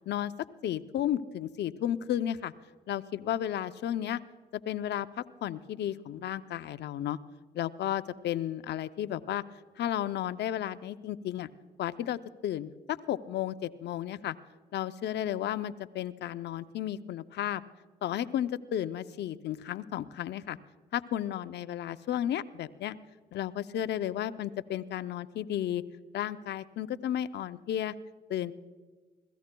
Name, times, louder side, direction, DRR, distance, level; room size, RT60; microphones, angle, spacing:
voice 1, 0.6-2.5 2.9-4.2 4.5-7.2 7.5-9.4 9.8-11.5 11.8-14.3 14.7-17.6 18.0-20.6 20.9-23.0 23.3-25.8 26.1-27.9 28.3-28.5, left 11 dB, 75° left, 13 dB, 0.6 m, -33 dB
27.0 x 17.5 x 2.3 m, 1.4 s
supercardioid pair, 50°, 18 cm